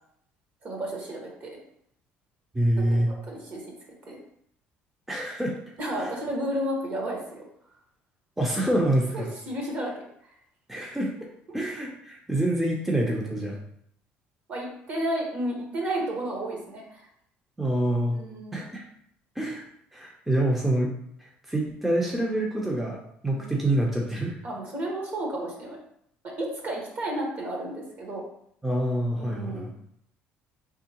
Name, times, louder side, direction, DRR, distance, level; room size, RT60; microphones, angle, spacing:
voice 1, 0.6-1.5 2.9-3.6 4.1-4.2 5.8-7.4 9.1-10.0 14.5-17.1 18.1-18.6 23.3-23.6 24.4-25.8 26.2-28.2 29.2-29.7, right 1 dB, 45° right, -1 dB, 1.4 m, -32 dB
voice 2, 2.5-3.1 5.1-5.5 6.0-6.1 8.4-9.3 10.7-11.1 11.5-13.6 17.6-18.2 18.5-18.8 19.4-19.6 19.9-20.9 21.2-24.4 28.6-29.7, right 1 dB, 5° right, -2 dB, 0.6 m, -26 dB
4.4 x 3.6 x 2.9 m, 0.71 s
cardioid pair, 110°, 4 cm